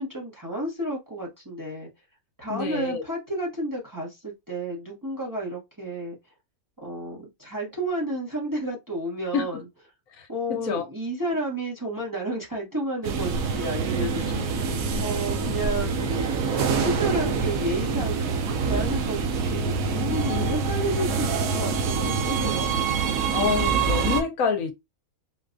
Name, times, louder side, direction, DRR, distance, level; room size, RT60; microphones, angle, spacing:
voice 1, 0.0-1.9 2.4-6.1 6.8-9.6 10.3-14.7 15.0-22.7, right 1 dB, 15° right, 0.9 m, -31 dB
voice 2, 2.5-3.0 9.3-9.4 10.2-10.8 14.3-15.1 20.3-20.6 23.3-24.7, left 6 dB, 70° left, 1.0 m, -28 dB
sound 1, 13.0-24.2, right 5 dB, 70° right, 1.0 m, -25 dB
4.0 x 2.3 x 2.5 m
omnidirectional pair, 1.5 m